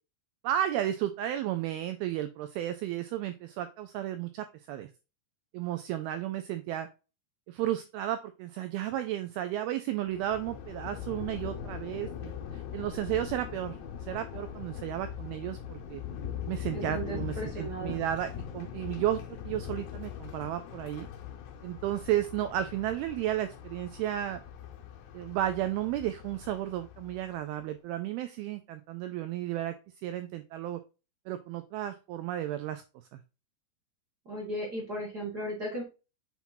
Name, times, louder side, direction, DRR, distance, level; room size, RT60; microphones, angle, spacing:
voice 1, 0.4-4.9 5.5-6.9 7.5-13.8 14.1-16.0 16.4-21.1 21.6-24.4 25.1-30.8 31.3-32.8 33.1-33.2, right 12 dB, 85° right, 8 dB, 2.2 m, -33 dB
Thunder, 10.1-27.5, left 9 dB, 80° left, 3.4 m, -41 dB
voice 2, 16.7-18.0 34.2-35.8, right 1 dB, 50° right, -2 dB, 1.1 m, -36 dB
7.3 x 5.8 x 2.7 m, 0.30 s
omnidirectional pair, 5.1 m